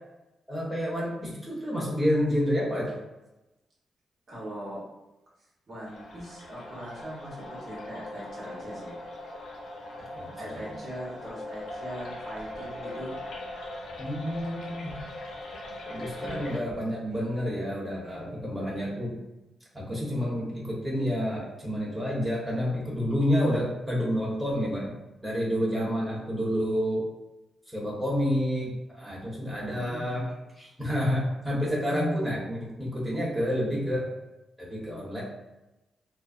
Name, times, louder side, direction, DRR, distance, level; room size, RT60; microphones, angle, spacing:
voice 1, 0.5-2.9 10.1-10.7 14.0-15.0 15.9-19.2 19.7-24.9 25.2-27.0 27.7-30.2 30.6-34.1 34.6-35.2, equal, ahead, -6 dB, 1.1 m, -29 dB
voice 2, 4.3-4.8 5.7-9.0 10.4-13.1 16.0-16.4 20.1-20.6 29.7-30.3, equal, 60° right, -6 dB, 1.1 m, -41 dB
sound 1, 5.9-16.6, left 1 dB, 75° left, 0.6 m, -40 dB
3.1 x 2.0 x 2.5 m, 1.0 s
cardioid pair, 65°, 0 cm